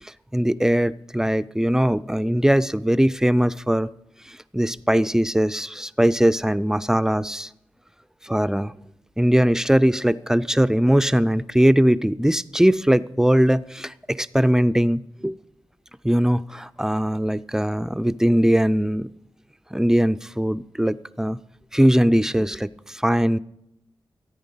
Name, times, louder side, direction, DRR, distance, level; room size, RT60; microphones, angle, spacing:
voice 1, 0.0-3.9 4.3-7.5 8.2-8.7 9.2-15.4 16.0-19.1 19.7-21.4 21.7-23.4, equal, 5° right, 15 dB, 0.4 m, -20 dB
14.0 x 8.9 x 5.6 m, 0.85 s
cardioid pair, 45°, 9 cm